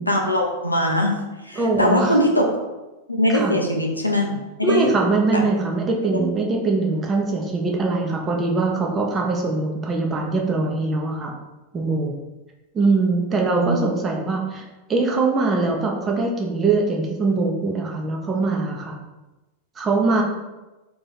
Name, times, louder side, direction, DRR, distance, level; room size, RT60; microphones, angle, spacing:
voice 1, 0.1-2.6 3.1-4.9 5.3-5.4 13.5-13.8, left 1 dB, 85° left, 1 dB, 0.5 m, -21 dB
voice 2, 1.6-2.1 3.3-3.5 4.6-11.3 11.7-12.1 12.7-14.6 14.9-18.9 19.8-20.2, right 3 dB, 20° right, 0 dB, 0.7 m, -22 dB
3.0 x 2.9 x 3.9 m, 1.1 s
figure-of-eight pair, 90°, 0 cm